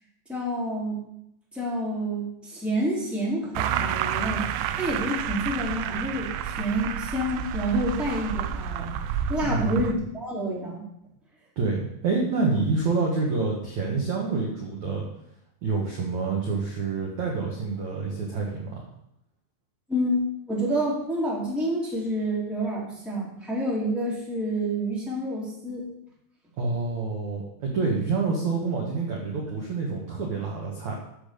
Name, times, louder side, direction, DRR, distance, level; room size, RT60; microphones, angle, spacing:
voice 1, 0.3-1.0 1.5-4.4 4.7-8.9 9.3-10.8 19.9-25.8, equal, ahead, -5 dB, 2.8 m, -28 dB
sound 1, 3.6-9.9, right 9 dB, 80° right, 3.1 m, -30 dB
voice 2, 9.4-9.9 11.6-15.0 15.6-18.8 26.6-31.0, right 4 dB, 55° right, -2 dB, 2.1 m, -27 dB
11.5 x 7.4 x 7.0 m, 0.78 s
omnidirectional pair, 6.0 m